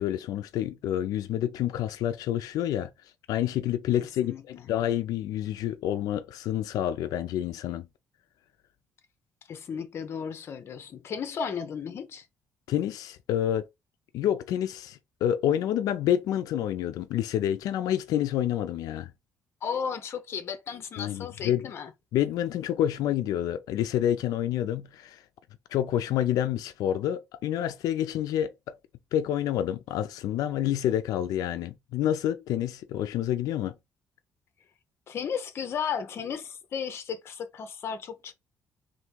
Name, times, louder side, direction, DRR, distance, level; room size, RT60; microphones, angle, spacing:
voice 1, 0.0-2.9 3.3-7.9 12.7-13.7 14.1-19.1 21.0-21.7 22.1-25.2 25.7-28.8 29.1-33.7, left 11 dB, 85° left, 0.4 m, -28 dB
voice 2, 4.2-4.7 9.5-12.3 19.6-21.9 35.1-38.3, left 7 dB, 45° left, 0.7 m, -34 dB
3.5 x 2.6 x 4.5 m
cardioid pair, 175°, 6 cm